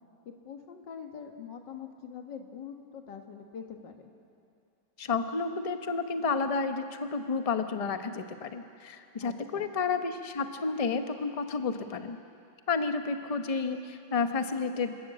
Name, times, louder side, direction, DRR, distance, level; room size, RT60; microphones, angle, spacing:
voice 1, 0.4-4.1 9.2-9.7, left 7 dB, 65° left, 4 dB, 2.2 m, -44 dB
voice 2, 5.0-12.2 12.7-14.9, left 4 dB, 40° left, 7 dB, 0.5 m, -31 dB
29.0 x 12.5 x 8.7 m, 2.5 s
omnidirectional pair, 2.1 m